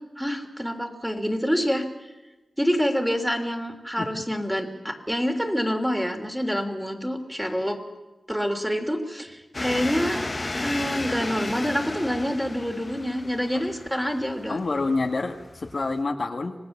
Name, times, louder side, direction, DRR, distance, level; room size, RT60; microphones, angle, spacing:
voice 1, 0.2-1.9 2.6-7.8 8.3-10.3 10.6-14.6, equal, 5° right, 4 dB, 3.2 m, -27 dB
sound 1, 9.5-16.0, left 2 dB, 30° left, 0.9 m, -33 dB
voice 2, 14.5-16.5, left 3 dB, 55° left, 4 dB, 1.6 m, -27 dB
26.0 x 18.0 x 7.3 m, 1.1 s
wide cardioid pair, 70°, 0 cm